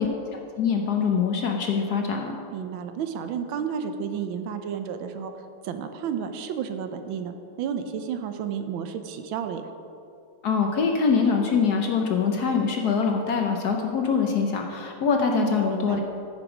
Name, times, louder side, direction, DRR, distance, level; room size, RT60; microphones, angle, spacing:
voice 1, 0.0-2.4 10.4-16.0, left 5 dB, 65° left, 2 dB, 1.1 m, -24 dB
voice 2, 2.5-5.3 5.6-9.6 15.3-16.0, right 7 dB, 75° right, 8 dB, 1.4 m, -31 dB
14.5 x 6.1 x 4.9 m, 2.7 s
omnidirectional pair, 2.3 m